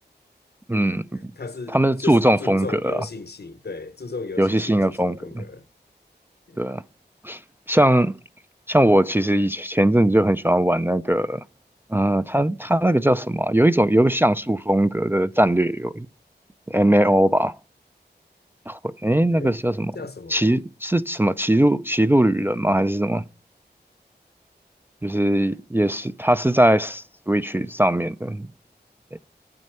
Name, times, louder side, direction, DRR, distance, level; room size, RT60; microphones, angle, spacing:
voice 1, 0.7-1.3 1.7-3.1 4.4-5.4 6.6-6.8 7.2-7.4 7.7-8.1 8.7-11.4 11.9-16.1 16.7-17.5 18.7-19.9 20.3-23.2 25.0-28.5, right 1 dB, 10° right, 0.3 m, -20 dB
voice 2, 1.4-5.6 6.5-6.6 19.3-19.6 19.9-20.5, left 4 dB, 65° left, 0.8 m, -35 dB
7.5 x 6.2 x 4.4 m
wide cardioid pair, 55°, 18 cm